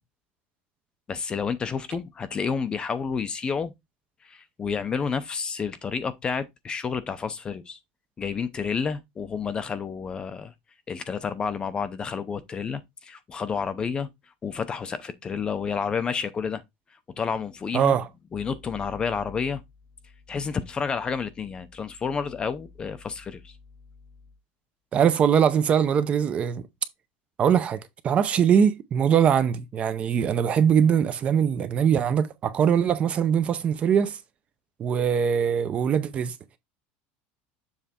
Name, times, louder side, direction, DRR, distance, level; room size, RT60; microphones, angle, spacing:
voice 1, 1.1-3.7 4.2-7.8 8.2-10.5 10.9-14.1 14.4-16.6 17.2-18.0 18.3-19.6 20.3-23.5, left 6 dB, 20° left, 0.5 m, -30 dB
voice 2, 17.7-18.1 24.9-26.7 27.4-34.2 34.8-36.3, right 8 dB, 25° right, 0.6 m, -22 dB
7.3 x 3.3 x 4.3 m
cardioid pair, 165°, 5 cm